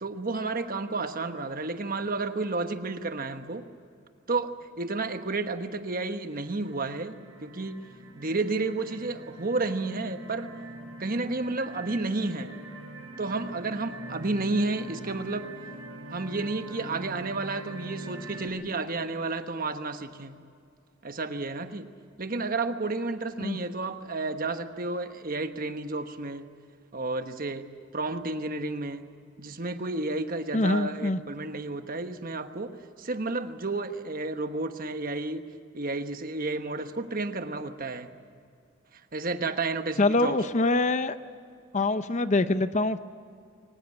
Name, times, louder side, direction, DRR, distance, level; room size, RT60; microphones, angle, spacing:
voice 1, 0.0-3.7 4.3-7.8 8.2-10.6 11.0-12.6 13.2-15.5 16.1-20.4 21.0-21.9 22.2-26.5 26.9-29.1 29.4-35.5 35.7-38.1 39.1-40.4, right 3 dB, 45° right, 8 dB, 1.2 m, -31 dB
sound 1, 6.2-18.5, right 2 dB, 85° right, 4.9 m, -43 dB
voice 2, 30.5-31.2 40.0-41.1 41.7-43.0, left 2 dB, 35° left, 12 dB, 0.7 m, -24 dB
23.0 x 20.0 x 8.5 m, 2.4 s
head